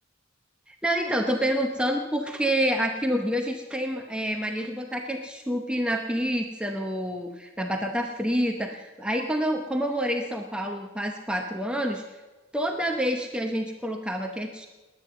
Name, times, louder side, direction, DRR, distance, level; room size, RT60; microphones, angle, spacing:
voice 1, 0.7-12.0 12.5-14.7, equal, 5° right, 2 dB, 0.9 m, -28 dB
20.0 x 9.5 x 7.6 m, 1.2 s
head